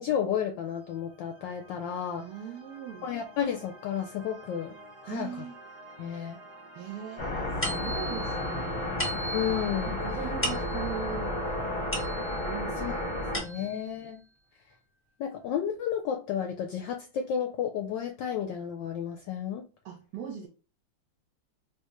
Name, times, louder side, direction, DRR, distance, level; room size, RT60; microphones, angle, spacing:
voice 1, 0.0-2.3 3.0-4.8 5.0-5.3 6.0-6.4 9.3-10.0 12.8-12.9 13.4-14.2 15.2-19.6, left 8 dB, 75° left, 1.1 m, -32 dB
sound 1, 0.6-13.5, right 2 dB, 30° right, 0.7 m, -51 dB
voice 2, 2.2-3.1 5.1-5.6 6.7-8.9 9.9-11.3 12.4-13.8 19.8-20.5, right 8 dB, 65° right, 1.1 m, -40 dB
sound 2, 7.2-13.4, left 1 dB, 45° left, 0.8 m, -32 dB
sound 3, 7.6-12.6 13.0-13.9, equal, 10° left, 0.8 m, -37 dB
3.5 x 2.8 x 2.9 m
omnidirectional pair, 2.3 m